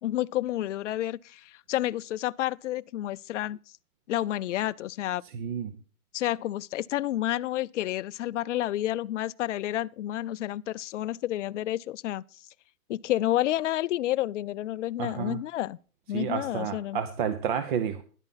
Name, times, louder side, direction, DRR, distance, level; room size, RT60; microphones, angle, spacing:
voice 1, 0.0-3.6 4.1-5.2 6.1-12.2 12.9-15.8 16.1-17.0, left 14 dB, 55° left, 0.5 m, -30 dB
voice 2, 5.3-5.8 15.0-15.4 16.1-18.0, right 8 dB, 35° right, 0.8 m, -30 dB
12.5 x 11.0 x 3.9 m
hypercardioid pair, 150°, 45 cm